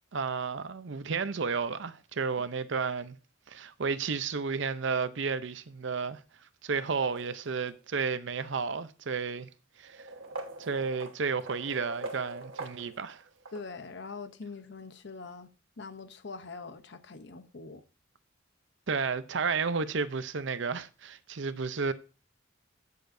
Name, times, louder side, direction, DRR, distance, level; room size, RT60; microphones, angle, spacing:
voice 1, 0.1-3.2 3.5-6.2 6.6-9.5 9.8-10.0 10.6-13.2 18.9-21.9, right 5 dB, 65° right, 0.6 m, -32 dB
sound 1, 6.7-7.8 8.7-8.8 9.8-13.7, right 3 dB, 85° right, 1.4 m, -43 dB
voice 2, 13.5-15.5 15.8-17.8, left 4 dB, 60° left, 0.8 m, -43 dB
13.0 x 6.7 x 2.7 m
head